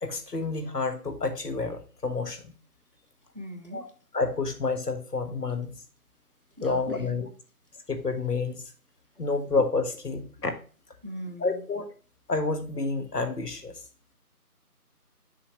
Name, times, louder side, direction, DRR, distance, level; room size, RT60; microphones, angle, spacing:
voice 1, 0.0-2.4 3.7-3.9 4.1-5.7 6.6-7.3 7.9-8.7 9.2-10.5 11.4-11.9 12.3-13.8, left 3 dB, 85° left, 7 dB, 1.6 m, -29 dB
voice 2, 3.3-3.8 6.6-7.2 11.0-11.6, right 1 dB, 35° right, 7 dB, 0.9 m, -40 dB
7.0 x 5.3 x 3.0 m, 0.38 s
figure-of-eight pair, 180°, 46 cm